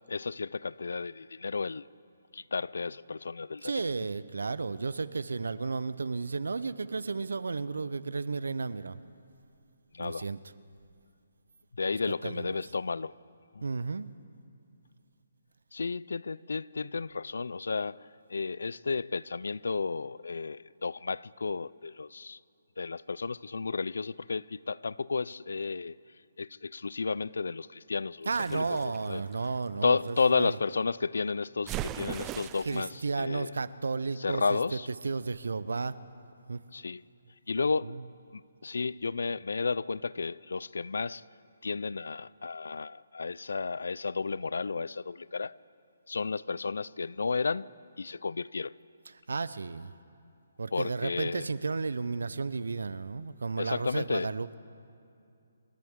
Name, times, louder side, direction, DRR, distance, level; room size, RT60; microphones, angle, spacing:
voice 1, 0.1-1.9 2.3-3.7 9.9-10.3 11.7-13.1 13.5-13.6 15.7-22.4 22.8-26.0 26.4-29.2 29.8-33.5 34.2-34.9 36.7-37.0 37.5-38.0 38.3-41.2 41.6-45.6 46.1-47.7 48.0-48.7 50.7-51.5 53.6-54.3, left 4 dB, 80° left, 0.3 m, -32 dB
voice 2, 3.6-9.0 10.0-10.4 12.2-12.6 13.6-14.1 28.3-30.6 32.7-34.6 35.0-36.0 36.5-36.6 37.8-38.0 49.3-49.9 50.6-54.6, right 4 dB, 85° right, 0.6 m, -33 dB
sound 1, 28.3-30.2 31.7-33.0, right 13 dB, 15° right, 0.3 m, -39 dB
28.0 x 14.0 x 3.7 m
hypercardioid pair, 165°, 0 cm